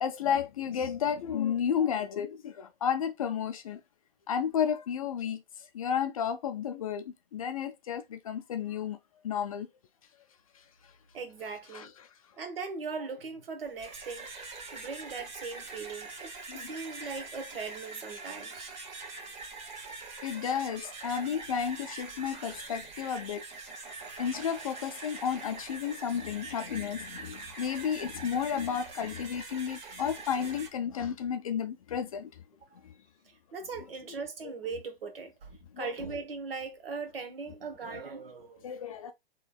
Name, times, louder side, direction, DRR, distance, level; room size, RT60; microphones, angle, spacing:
voice 1, 0.0-3.8 4.3-7.0 7.3-9.0 9.2-9.7 11.7-12.1 16.5-16.7 20.2-23.4 24.2-32.3 32.8-32.9 35.7-35.9 38.6-39.1, left 8 dB, 35° left, 0.4 m, -32 dB
voice 2, 11.1-11.9 12.4-14.3 14.7-18.7 33.5-35.5 35.8-38.7, right 4 dB, 70° right, 1.1 m, -39 dB
sound 1, 13.6-30.7, right 3 dB, 45° right, 1.1 m, -44 dB
3.3 x 3.0 x 2.2 m
hypercardioid pair, 135°, 30 cm